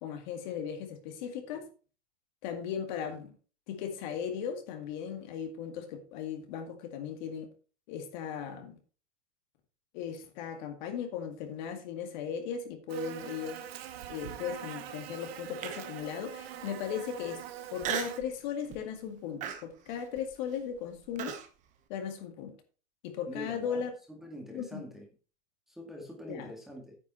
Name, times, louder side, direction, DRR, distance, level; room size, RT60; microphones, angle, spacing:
voice 1, 0.0-1.7 2.4-3.3 3.7-7.5 7.9-8.8 9.9-13.6 14.1-17.4 17.7-21.4 21.9-22.6 23.0-23.9 24.5-24.8 26.3-26.5, left 7 dB, 40° left, 6 dB, 2.0 m, -37 dB
Buzz, 12.9-18.2, right 11 dB, 60° right, 1.6 m, -44 dB
Human voice, 15.6-16.1 16.6-16.7 17.8-18.3 18.7-19.0 19.4-21.5, right 9 dB, 20° right, 1.1 m, -37 dB
voice 2, 23.3-23.8 24.1-25.1 25.7-27.0, equal, ahead, -1 dB, 2.0 m, -44 dB
9.4 x 8.2 x 4.3 m, 0.37 s
supercardioid pair, 165°, 35 cm